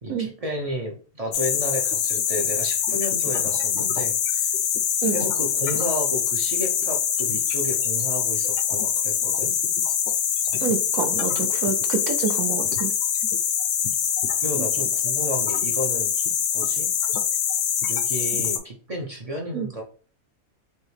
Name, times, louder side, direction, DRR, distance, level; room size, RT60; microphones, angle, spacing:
voice 1, 0.0-4.5 5.1-9.6 14.4-16.1 16.5-16.9 17.9-19.8, equal, 45° right, 1 dB, 0.4 m, -32 dB
sound 1, 1.3-18.6, left 8 dB, 65° left, 0.8 m, -24 dB
voice 2, 10.6-12.9 14.6-14.7 19.5-19.7, right 6 dB, 75° right, 7 dB, 0.9 m, -27 dB
5.4 x 2.1 x 3.2 m, 0.39 s
omnidirectional pair, 1.5 m